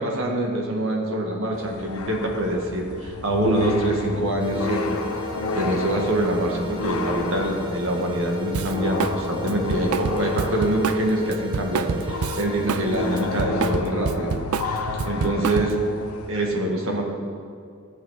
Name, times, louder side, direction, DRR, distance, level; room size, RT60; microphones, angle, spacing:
voice 1, 0.0-5.0 5.5-14.3 15.0-15.8 16.3-17.0, right 1 dB, 65° right, 0 dB, 1.7 m, -25 dB
sound 1, 1.5-16.3, left 3 dB, 75° left, 0.8 m, -31 dB
sound 2, 4.4-13.4, right 1 dB, 20° right, 1.4 m, -38 dB
Drum kit, 8.5-9.2 9.5-12.9 13.2-15.9, right 6 dB, 80° right, 0.4 m, -27 dB
14.5 x 7.5 x 4.1 m, 2.2 s
head